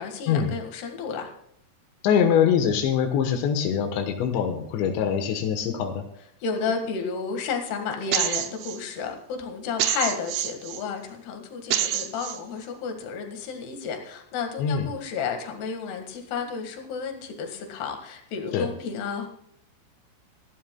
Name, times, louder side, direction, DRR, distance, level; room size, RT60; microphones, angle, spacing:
voice 1, 0.0-1.3 6.4-19.3, left 5 dB, 70° left, 4 dB, 3.7 m, -32 dB
voice 2, 2.0-6.0 14.6-14.9 18.5-18.7, left 8 dB, 90° left, 4 dB, 3.4 m, -23 dB
sound 1, 8.1-8.8 9.8-10.8 11.7-12.4, right 11 dB, 75° right, 2.5 m, -26 dB
27.0 x 11.5 x 2.3 m, 0.73 s
omnidirectional pair, 5.0 m